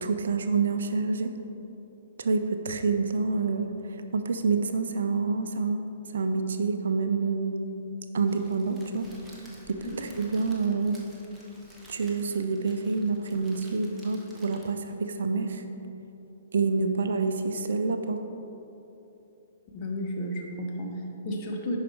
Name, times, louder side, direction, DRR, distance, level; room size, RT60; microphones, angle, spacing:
voice 1, 0.0-1.3 2.2-7.6 8.1-9.1 9.7-11.0 11.9-15.6 16.5-18.2, right 4 dB, 55° right, 7 dB, 0.5 m, -27 dB
Crackle, 8.2-15.0, right 1 dB, 5° right, 1.2 m, -53 dB
voice 2, 19.7-21.8, equal, 30° left, 0 dB, 1.2 m, -33 dB
11.0 x 4.8 x 4.7 m, 3.0 s
figure-of-eight pair, 120°, 0 cm